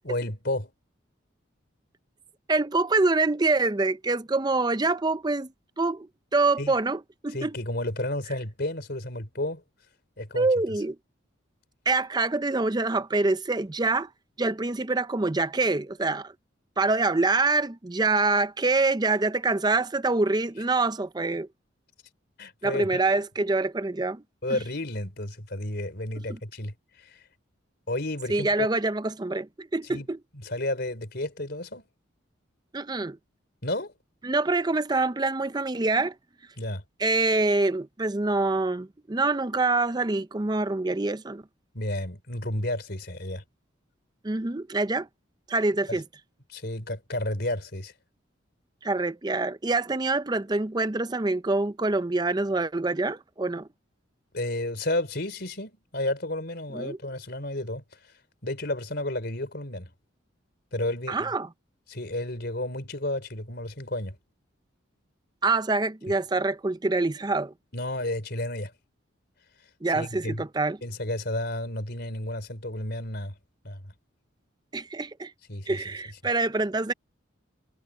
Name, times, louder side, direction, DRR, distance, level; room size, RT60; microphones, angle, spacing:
voice 1, 0.0-0.7 6.6-6.7 7.3-9.6 10.2-10.5 22.4-23.0 24.4-27.2 27.9-28.7 29.9-30.1 30.4-31.8 33.6-33.9 36.6-36.8 41.7-43.4 45.9-46.0 46.5-47.9 54.3-57.8 58.4-59.9 60.7-61.3 61.9-64.2 67.7-68.7 69.9-70.5 70.8-73.4 73.6-73.9 75.5-75.8, left 1 dB, 55° left, 4.3 m, -32 dB
voice 2, 2.5-5.5 5.8-6.1 6.3-7.5 10.3-11.0 11.9-14.1 14.4-16.3 16.8-21.5 22.6-24.2 24.5-24.6 26.3-26.4 28.3-30.2 32.7-33.2 34.2-36.1 37.0-41.4 44.2-45.1 45.5-46.0 48.8-53.7 56.7-57.0 61.1-61.5 65.4-67.5 69.8-70.8 74.7-75.3 75.7-76.9, right 3 dB, 20° right, 0.5 m, -25 dB
head